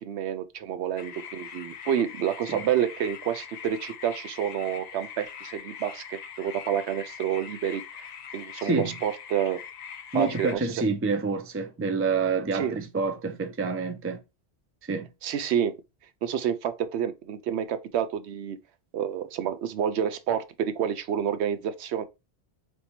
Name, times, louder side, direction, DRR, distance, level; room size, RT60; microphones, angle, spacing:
voice 1, 0.0-8.0 8.3-9.6 10.1-10.6 12.5-12.8 15.2-15.7 16.2-18.6 18.9-22.0, right 9 dB, 90° right, 0.9 m, -29 dB
sound 1, 1.0-10.5, left 7 dB, 55° left, 0.5 m, -42 dB
voice 2, 8.6-9.0 10.1-14.2 14.8-15.1, right 4 dB, 20° right, 0.3 m, -28 dB
3.5 x 2.7 x 4.3 m
omnidirectional pair, 1.1 m